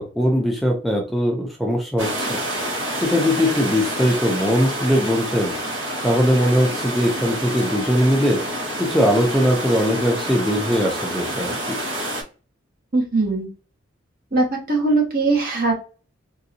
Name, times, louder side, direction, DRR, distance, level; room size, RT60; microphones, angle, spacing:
voice 1, 0.0-2.4 3.0-5.5 6.0-8.4 8.8-11.8, equal, ahead, 0 dB, 0.5 m, -20 dB
sound 1, 2.0-12.2, right 1 dB, 70° right, 1.4 m, -28 dB
voice 2, 12.9-13.5 14.3-15.7, right 3 dB, 50° right, -1 dB, 1.4 m, -20 dB
3.8 x 2.6 x 2.7 m, 0.35 s
head